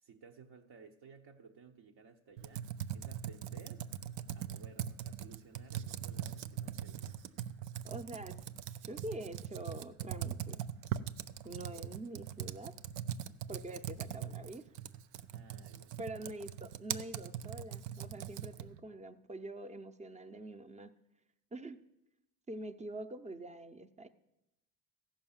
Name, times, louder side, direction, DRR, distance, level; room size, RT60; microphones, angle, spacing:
voice 1, 0.0-3.8 4.3-7.2 14.0-14.7 15.3-16.3, right 5 dB, 60° right, 1.1 m, -58 dB
Computer keyboard, 2.4-18.8, right 10 dB, 80° right, 0.6 m, -41 dB
voice 2, 7.8-8.4 8.8-10.6 11.4-12.7 13.5-14.7 16.0-20.9 21.5-21.8 22.5-24.1, right 1 dB, 15° right, 0.7 m, -45 dB
14.5 x 5.8 x 7.2 m
supercardioid pair, 75°, 46 cm